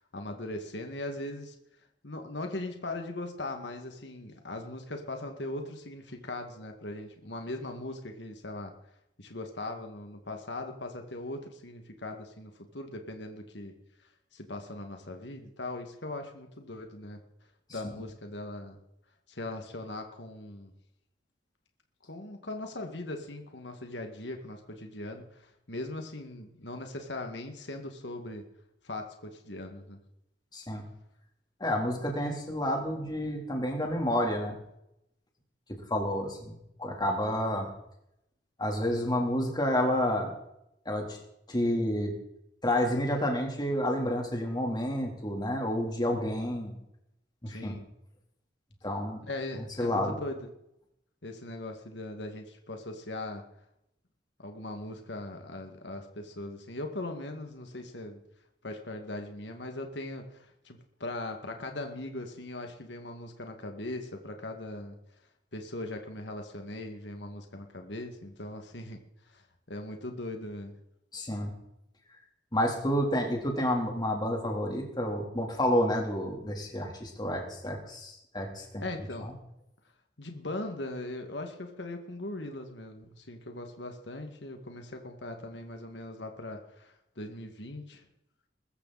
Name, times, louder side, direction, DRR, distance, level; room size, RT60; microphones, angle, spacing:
voice 1, 0.0-1.6 2.0-8.7 9.2-13.7 14.3-17.2 17.7-18.8 19.3-20.7 22.0-28.4 28.8-30.0 47.5-47.9 49.2-50.5 51.2-53.4 54.4-58.2 58.6-65.0 65.5-69.0 69.3-70.7 78.8-79.3 80.2-88.0, left 2 dB, 80° left, 4 dB, 2.2 m, -40 dB
voice 2, 30.5-30.8 31.6-34.6 35.9-37.7 38.6-40.3 40.9-41.2 41.5-42.1 42.6-46.7 47.4-47.8 48.8-49.2 49.8-50.2 71.1-71.5 72.5-78.8 79.2-79.3, left 1 dB, 25° left, 1 dB, 3.6 m, -29 dB
22.0 x 14.0 x 4.3 m, 0.80 s
head